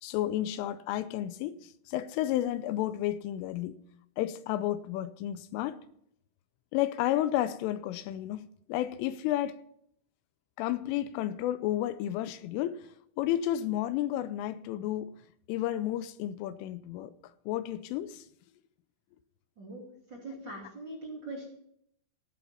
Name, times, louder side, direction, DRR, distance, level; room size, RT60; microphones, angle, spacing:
voice 1, 0.0-3.8 4.2-5.8 6.7-8.4 8.7-9.6 10.6-15.2 15.5-17.1 17.5-18.3, left 13 dB, 85° left, 3.2 m, -32 dB
voice 2, 19.6-21.5, right 2 dB, 30° right, 2.5 m, -42 dB
15.5 x 9.1 x 5.7 m
omnidirectional pair, 5.8 m